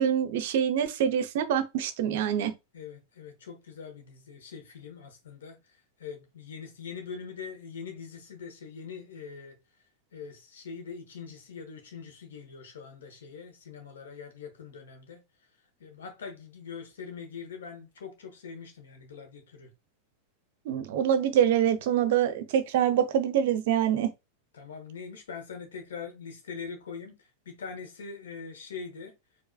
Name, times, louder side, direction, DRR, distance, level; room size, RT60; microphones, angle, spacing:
voice 1, 0.0-2.5 20.7-24.1, right 9 dB, 50° right, 0.5 m, -25 dB
voice 2, 2.7-9.6 10.1-15.2 15.8-19.7 24.5-29.1, left 6 dB, 65° left, 1.1 m, -43 dB
4.7 x 2.7 x 2.2 m
figure-of-eight pair, 90°, 0 cm